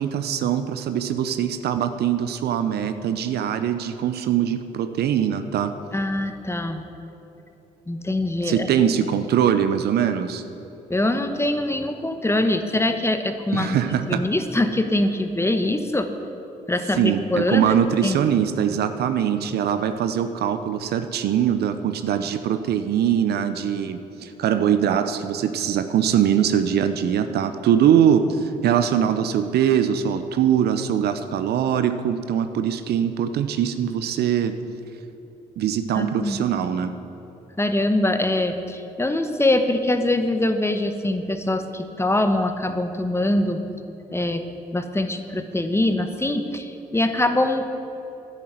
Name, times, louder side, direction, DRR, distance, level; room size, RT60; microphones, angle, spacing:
voice 1, 0.0-5.7 8.4-10.4 13.5-14.2 17.0-34.6 35.6-36.9, right 9 dB, 70° right, 10 dB, 0.7 m, -22 dB
voice 2, 5.9-6.8 7.9-8.7 10.9-13.8 14.1-16.1 16.7-17.8 18.0-18.2 35.9-36.4 37.6-43.6 44.1-44.4 44.7-47.7, left 1 dB, 15° left, 7 dB, 1.1 m, -23 dB
10.0 x 7.2 x 9.3 m, 3.0 s
hypercardioid pair, 50°, 17 cm